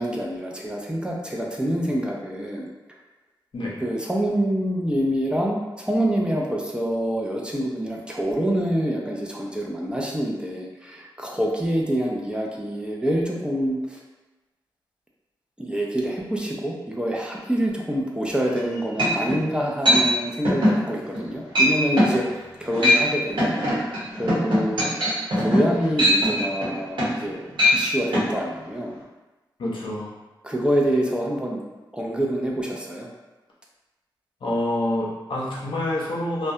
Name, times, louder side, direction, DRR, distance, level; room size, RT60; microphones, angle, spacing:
voice 1, 0.0-2.7 3.8-14.0 15.6-23.5 24.1-24.9 25.4-28.9 30.4-31.6 31.9-33.1, right 1 dB, 10° right, -2 dB, 0.4 m, -26 dB
sound 1, 18.5-18.6 19.0-19.4 19.9-20.0 20.5-20.8 21.1-21.3 21.6-21.7 22.0-22.2 22.6-23.0 23.4-27.3 27.5-27.8 28.1-28.3, left 1 dB, 80° right, 0.9 m, -20 dB
voice 2, 29.6-30.1 34.4-36.5, left 1 dB, 75° left, -5 dB, 0.6 m, -27 dB
2.2 x 2.1 x 2.7 m, 1.1 s
cardioid pair, 65°, 8 cm